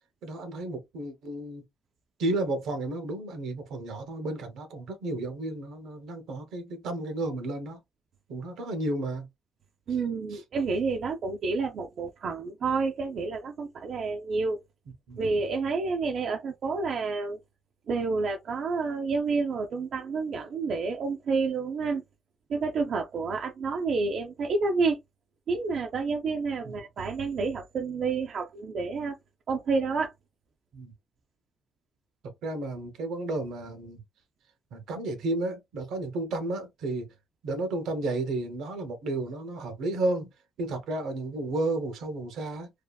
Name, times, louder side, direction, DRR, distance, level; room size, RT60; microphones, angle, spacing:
voice 1, 0.2-1.6 2.2-7.8 8.3-9.3 10.3-10.4 15.1-15.2 26.6-26.8 30.7-30.9 32.4-34.0 34.7-37.1 37.4-40.3 40.6-42.7, right 2 dB, 80° right, 0.8 m, -32 dB
voice 2, 9.9-14.6 15.2-17.4 17.9-22.0 22.5-25.0 25.5-29.2 29.5-30.1, right 4 dB, 60° right, 0.5 m, -29 dB
2.7 x 2.4 x 2.2 m
cardioid pair, 90°, 0 cm